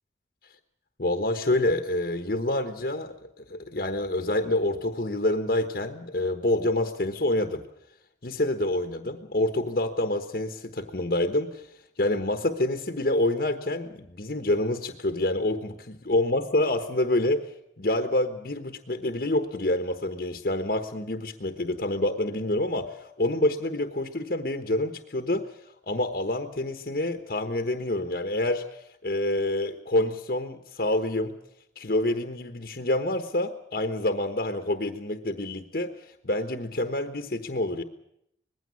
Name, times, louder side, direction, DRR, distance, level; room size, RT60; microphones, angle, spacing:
voice 1, 1.0-7.6 8.2-11.7 12.0-17.5 17.8-25.6 25.8-31.4 31.8-37.8, left 1 dB, 55° left, 7 dB, 1.2 m, -27 dB
20.0 x 16.0 x 9.7 m, 0.77 s
head